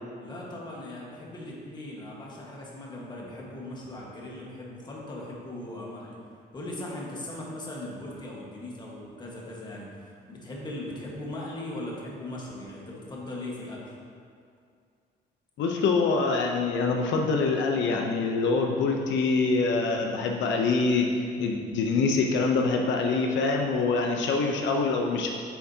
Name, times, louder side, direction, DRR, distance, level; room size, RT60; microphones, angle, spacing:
voice 1, 0.2-6.2 6.5-13.9, left 1 dB, 25° left, -4 dB, 1.4 m, -39 dB
voice 2, 15.6-25.3, left 4 dB, 75° left, 1 dB, 0.7 m, -25 dB
9.1 x 7.2 x 2.8 m, 2.3 s
cardioid pair, 155°, 19 cm